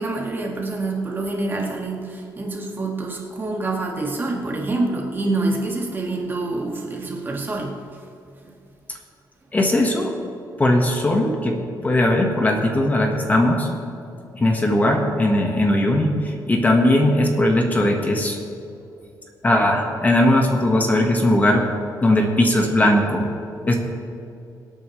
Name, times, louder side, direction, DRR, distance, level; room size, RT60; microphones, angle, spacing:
voice 1, 0.0-8.1, right 2 dB, 30° right, 0 dB, 1.8 m, -26 dB
voice 2, 9.5-10.1 10.6-11.6 11.8-13.7 14.3-18.4 19.4-21.6 22.0-23.3 23.6-23.7, left 1 dB, 20° left, 1 dB, 1.5 m, -19 dB
25.0 x 8.8 x 3.2 m, 2.7 s
cardioid pair, 135°, 7 cm